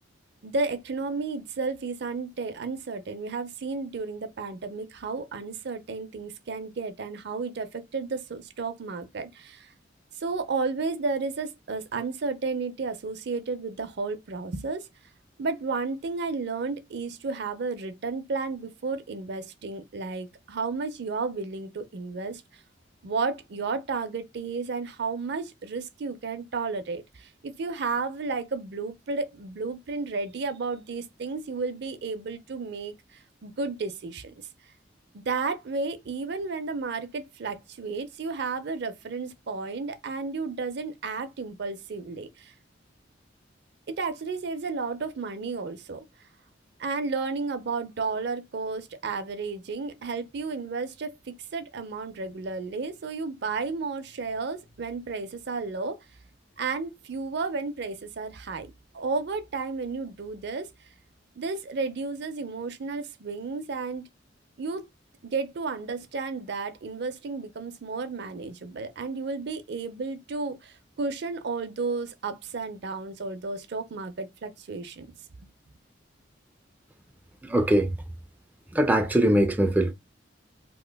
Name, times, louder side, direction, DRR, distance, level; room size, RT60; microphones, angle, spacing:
voice 1, 0.4-9.7 10.2-14.9 15.4-22.4 23.0-34.3 35.3-42.5 43.9-46.0 46.8-56.0 56.6-60.7 61.4-64.1 64.6-64.9 65.2-75.1 75.4-75.5, right 4 dB, 60° right, 0.5 m, -32 dB
voice 2, 77.4-77.9 78.7-79.9, right 1 dB, 10° right, 0.3 m, -21 dB
2.9 x 2.4 x 3.3 m
head